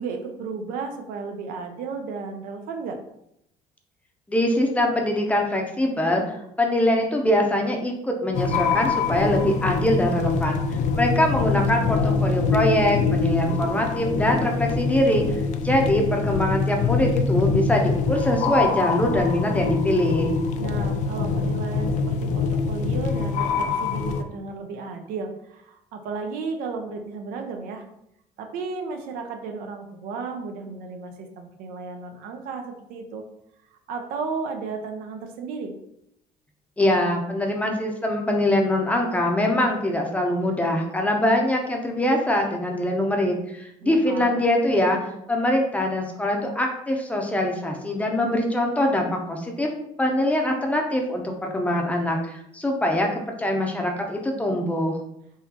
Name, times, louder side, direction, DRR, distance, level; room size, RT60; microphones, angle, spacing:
voice 1, 0.0-3.0 11.8-12.4 20.6-27.8 28.4-33.2 33.7-35.7 43.8-44.4, right 4 dB, 80° right, 4 dB, 0.6 m, -34 dB
voice 2, 4.3-10.6 10.9-15.2 15.6-20.3 36.8-45.0 45.3-49.7 50.0-55.0, left 1 dB, 10° left, 1 dB, 0.6 m, -23 dB
sound 1, 8.3-24.2, left 4 dB, 55° left, 0.4 m, -24 dB
3.7 x 2.9 x 2.8 m, 0.78 s
cardioid pair, 125°, 14 cm